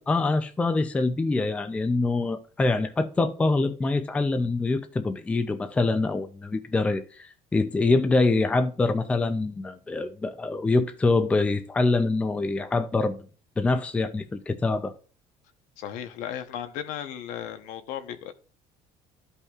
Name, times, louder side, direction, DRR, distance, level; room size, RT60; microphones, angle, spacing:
voice 1, 0.0-13.2 13.6-14.9, left 3 dB, 10° left, 0.4 m, -25 dB
voice 2, 15.8-18.3, left 10 dB, 70° left, 0.9 m, -35 dB
13.5 x 5.4 x 2.4 m
cardioid pair, 170°, 13 cm